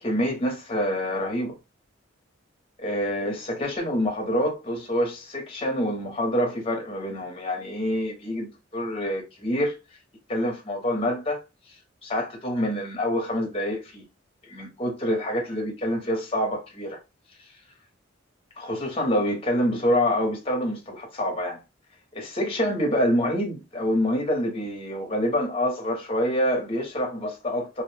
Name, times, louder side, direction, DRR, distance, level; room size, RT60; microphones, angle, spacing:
voice 1, 0.0-1.6 2.8-9.8 10.3-11.4 12.0-14.0 14.5-17.0 18.6-21.6 22.1-27.8, equal, 30° left, 0.8 m, -26 dB
2.5 x 2.0 x 3.2 m
head